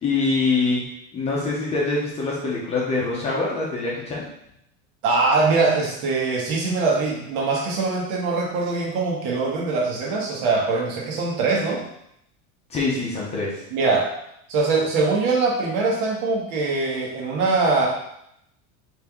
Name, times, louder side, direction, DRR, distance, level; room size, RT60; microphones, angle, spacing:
voice 1, 0.0-4.3 12.7-13.6, left 3 dB, 15° left, -5 dB, 0.6 m, -24 dB
voice 2, 5.0-11.8 13.7-14.1 14.5-17.9, right 3 dB, 80° right, -2 dB, 1.5 m, -22 dB
4.3 x 3.5 x 3.5 m, 0.76 s
cardioid pair, 175°, 43 cm